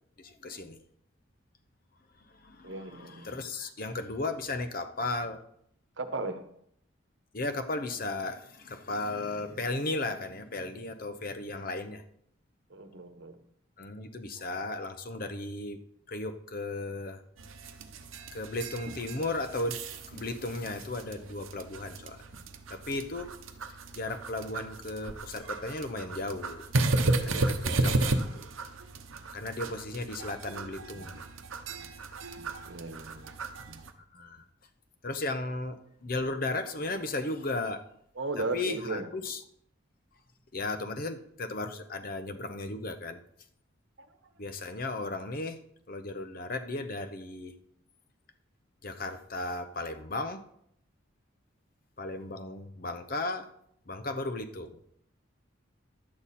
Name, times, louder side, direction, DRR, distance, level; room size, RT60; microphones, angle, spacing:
voice 1, 0.2-0.8 2.3-5.4 7.3-12.0 13.8-15.8 16.1-17.2 18.3-22.3 22.7-23.3 23.9-26.6 27.3-28.5 29.3-31.2 34.1-34.5 35.0-37.8 38.4-39.4 40.5-43.2 44.4-45.6 45.9-47.5 48.8-50.4 52.0-53.5 53.9-54.8, left 2 dB, 45° left, 9 dB, 0.8 m, -35 dB
voice 2, 2.6-3.4 6.0-6.4 12.7-13.4 14.4-14.6 27.2-27.6 32.6-33.4 38.2-39.1 44.0-44.1, right 3 dB, 65° right, 8 dB, 1.1 m, -37 dB
sound 1, 17.4-33.9, right 2 dB, 90° right, 0.9 m, -34 dB
11.5 x 8.7 x 4.3 m, 0.71 s
head